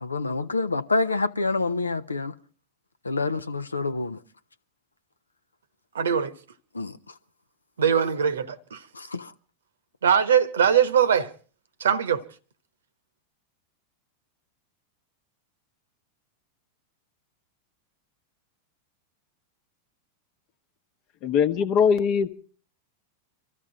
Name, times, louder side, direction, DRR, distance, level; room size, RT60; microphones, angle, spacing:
voice 1, 0.0-2.3 3.0-4.2 6.7-7.0 8.9-9.3, left 3 dB, 80° left, 0.7 m, -27 dB
voice 2, 5.9-6.3 7.8-8.8 10.0-11.3 11.8-12.2, right 8 dB, 65° right, 1.0 m, -21 dB
voice 3, 21.2-22.3, left 7 dB, 40° left, 1.0 m, -21 dB
24.5 x 14.5 x 3.8 m
figure-of-eight pair, 90°, 0 cm